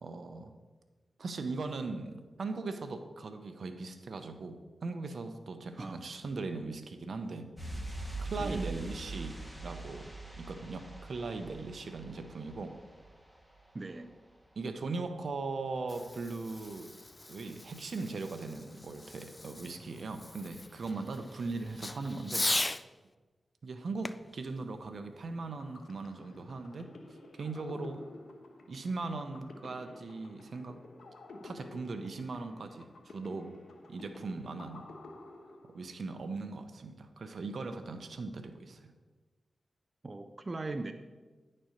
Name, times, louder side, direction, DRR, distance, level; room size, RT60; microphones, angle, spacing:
voice 1, 0.0-0.5 1.2-7.4 8.2-12.7 14.6-16.9 17.3-22.5 23.6-26.9 27.3-28.1 28.7-30.8 31.4-33.5 33.9-34.9 35.7-38.9, right 3 dB, 70° right, 7 dB, 0.8 m, -39 dB
sound 1, 7.6-14.1 14.3-14.5, right 2 dB, 5° right, 1.9 m, -43 dB
voice 2, 8.4-8.7 13.7-14.2 40.0-40.9, right 2 dB, 40° right, 6 dB, 0.6 m, -39 dB
Fireworks, 15.6-22.9 24.0-25.7, left 2 dB, 25° left, 0.3 m, -39 dB
sound 2, 25.3-36.1, left 2 dB, 75° left, 1.1 m, -52 dB
10.5 x 4.3 x 6.5 m, 1.3 s
cardioid pair, 55°, 0 cm